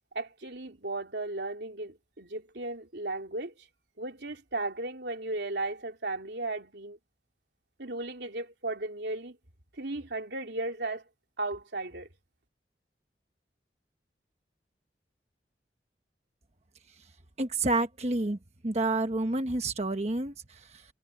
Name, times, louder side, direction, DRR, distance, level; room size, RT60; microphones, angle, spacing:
voice 1, 0.1-3.7 4.0-7.0 7.8-9.4 9.7-11.0 11.4-12.1, right 2 dB, 75° right, 3.2 m, -35 dB
voice 2, 17.4-18.4 18.6-20.8, right 2 dB, 35° right, 1.2 m, -29 dB
head